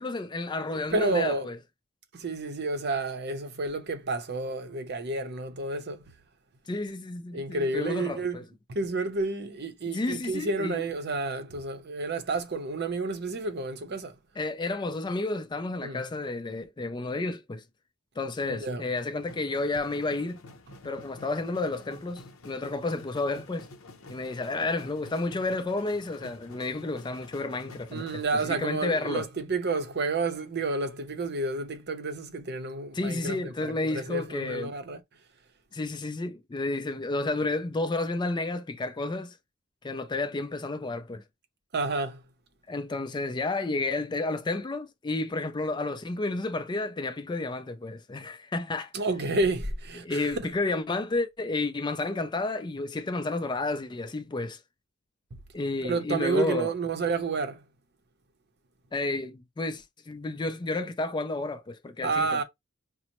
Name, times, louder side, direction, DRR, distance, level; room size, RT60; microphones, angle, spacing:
voice 1, 0.0-1.6 6.7-8.4 9.8-10.8 14.4-17.6 18.2-20.4 20.8-23.7 24.1-29.3 32.9-34.7 35.7-39.4 39.8-41.2 42.7-48.9 50.0-54.6 55.5-56.7 58.9-62.4, left 2 dB, 20° left, 0.3 m, -31 dB
voice 2, 0.7-1.5 2.1-6.0 7.3-8.4 8.7-14.2 15.8-16.0 18.4-18.9 27.9-35.0 41.7-42.2 48.9-50.5 55.8-57.6 62.0-62.4, right 3 dB, 50° right, 0.6 m, -30 dB
sound 1, 19.1-28.3, left 2 dB, 70° left, 0.7 m, -49 dB
5.0 x 2.0 x 2.9 m
head